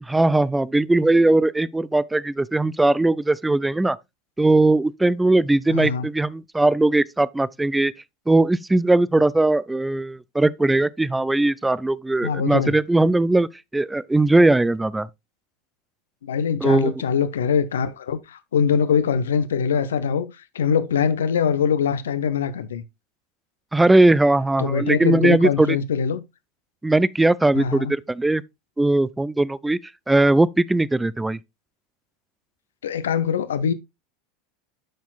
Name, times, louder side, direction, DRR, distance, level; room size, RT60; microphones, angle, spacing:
voice 1, 0.0-4.0 4.4-7.9 8.3-13.5 13.7-15.1 16.6-17.0 23.7-25.8 26.8-28.4 28.8-29.8 30.1-31.4, right 2 dB, 10° right, 0.4 m, -19 dB
voice 2, 5.7-6.1 12.2-12.8 16.2-22.8 24.6-26.2 27.5-27.9 32.8-33.7, left 7 dB, 80° left, 0.6 m, -23 dB
12.5 x 4.4 x 2.3 m
hypercardioid pair, 90°, 0 cm